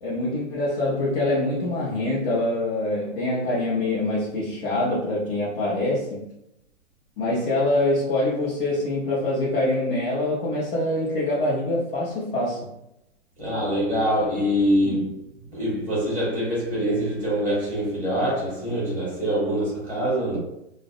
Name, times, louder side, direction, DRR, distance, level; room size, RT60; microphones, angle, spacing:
voice 1, 0.0-6.3 7.2-12.7 14.8-14.9, left 1 dB, 50° left, 0.9 m, -25 dB
voice 2, 13.4-15.1 15.4-20.4, equal, 5° left, 0.8 m, -24 dB
2.5 x 2.1 x 2.4 m
hypercardioid pair, 130°, 37 cm